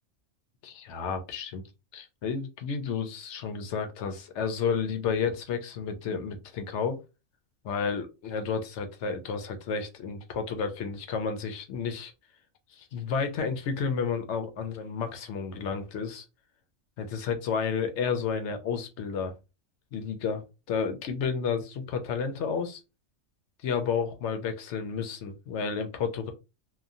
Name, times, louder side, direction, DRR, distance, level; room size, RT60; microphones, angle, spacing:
voice 1, 0.6-1.6 1.9-7.0 7.6-12.1 12.7-16.2 17.0-19.3 19.9-22.8 23.6-26.3, left 6 dB, 65° left, 0.8 m, -31 dB
2.9 x 2.2 x 2.5 m
omnidirectional pair, 1.4 m